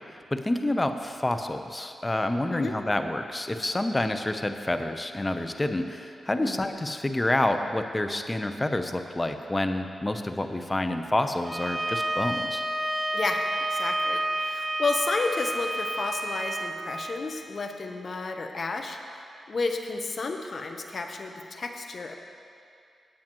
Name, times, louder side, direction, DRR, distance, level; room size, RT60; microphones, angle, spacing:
voice 1, 0.1-12.6, left 1 dB, 25° left, 7 dB, 0.8 m, -28 dB
Bowed string instrument, 11.4-16.8, right 1 dB, 20° right, 1.0 m, -29 dB
voice 2, 13.1-22.2, left 3 dB, 55° left, 4 dB, 0.9 m, -32 dB
16.5 x 8.7 x 3.1 m, 2.5 s
supercardioid pair, 45°, 0 cm